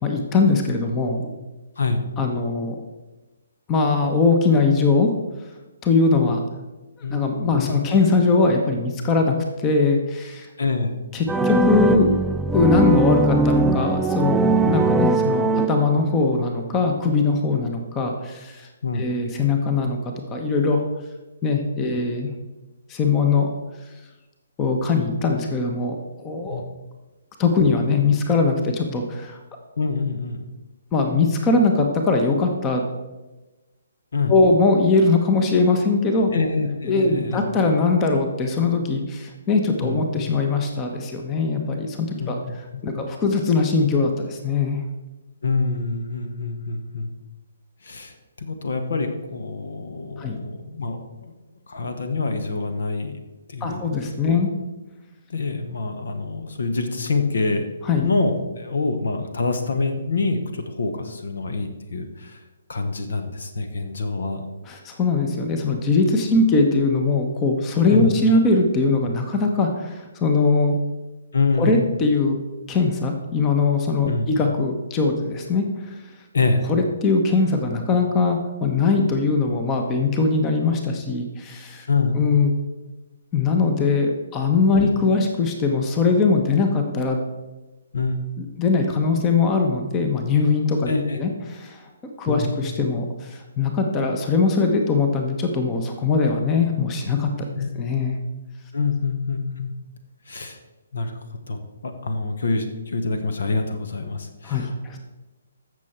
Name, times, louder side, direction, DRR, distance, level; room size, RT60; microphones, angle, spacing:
voice 1, 0.0-1.3 2.2-2.8 3.7-5.1 5.8-6.4 7.1-10.5 11.1-12.1 12.5-18.7 18.9-20.8 21.4-22.3 22.9-23.5 24.6-26.6 27.4-29.4 30.9-32.8 34.3-36.3 36.8-42.4 42.8-44.8 50.2-50.4 53.6-54.5 57.8-58.0 64.7-70.8 71.6-72.4 72.7-75.9 76.7-81.9 82.1-82.5 83.3-87.2 88.4-90.9 91.2-91.8 92.2-97.5 97.8-98.2 104.4-105.0, left 4 dB, 20° left, 4 dB, 1.1 m, -21 dB
voice 2, 7.0-7.7 10.6-11.0 18.8-19.1 21.9-22.0 26.5-26.7 29.8-30.5 34.1-34.3 36.3-37.4 39.8-40.1 42.2-43.0 45.4-47.1 47.8-51.3 51.7-53.2 53.5-53.8 54.3-54.4 55.3-57.7 58.0-62.4 62.7-64.5 67.9-68.1 71.3-71.9 74.1-74.3 76.3-76.6 81.9-82.2 84.8-84.9 87.9-88.2 90.9-91.2 92.3-92.5 97.5-97.7 98.7-99.7 100.3-100.6 100.9-101.2 101.5-105.0, left 3 dB, 55° left, 7 dB, 1.2 m, -26 dB
sound 1, 11.3-16.2, right 3 dB, 5° right, 0.3 m, -20 dB
15.0 x 6.5 x 4.4 m, 1.1 s
figure-of-eight pair, 135°, 0 cm